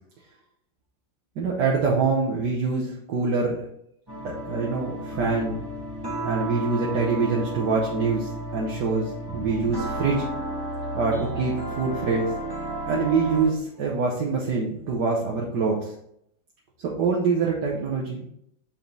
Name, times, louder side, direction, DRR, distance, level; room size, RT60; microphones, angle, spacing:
voice 1, 1.4-3.6 4.4-5.6 6.2-10.3 10.9-12.3 12.9-15.9 17.0-18.3, right 4 dB, 65° right, -3 dB, 1.6 m, -25 dB
sound 1, 4.1-13.6, right 1 dB, 15° right, 1.6 m, -32 dB
7.4 x 4.4 x 3.9 m, 0.72 s
omnidirectional pair, 2.0 m